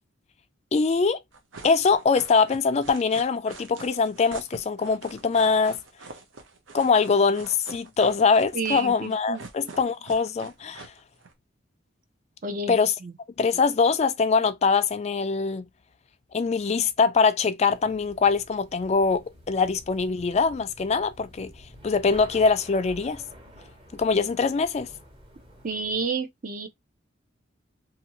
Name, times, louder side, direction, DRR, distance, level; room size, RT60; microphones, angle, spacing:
voice 1, 0.7-1.2 1.6-5.8 6.7-10.9 12.7-12.9 13.4-15.7 16.3-21.5 21.8-23.2 23.9-24.9, left 5 dB, 35° left, 0.3 m, -23 dB
sound 1, 1.3-11.3, right 3 dB, 80° right, 0.7 m, -44 dB
voice 2, 8.5-9.4 12.4-12.8 13.0-13.1 25.6-26.7, right 4 dB, 45° right, 0.5 m, -30 dB
sound 2, 17.7-26.0, equal, 25° right, 1.1 m, -48 dB
2.7 x 2.6 x 2.9 m
head